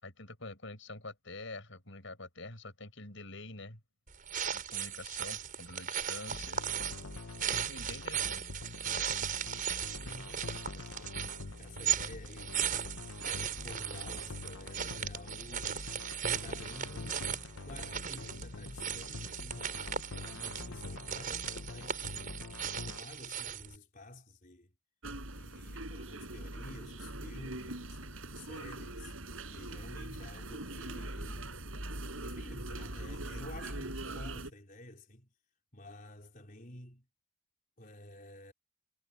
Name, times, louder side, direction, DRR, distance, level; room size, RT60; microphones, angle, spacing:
voice 1, 0.0-3.8 4.5-6.6 7.5-8.5, left 2 dB, 65° left, 5.8 m, -46 dB
sound 1, 4.1-23.8, right 9 dB, 40° right, 6.1 m, -37 dB
sound 2, 6.3-23.0, left 3 dB, 90° left, 1.1 m, -45 dB
voice 2, 9.7-11.3 11.6-12.9 13.2-15.7 16.2-19.9 20.2-22.6 22.8-24.7 25.3-28.0 28.3-29.1 29.5-31.6 32.2-35.3 35.7-37.1 37.8-38.5, left 1 dB, 40° left, 4.6 m, -51 dB
sound 3, 25.0-34.5, right 1 dB, 80° right, 6.3 m, -42 dB
head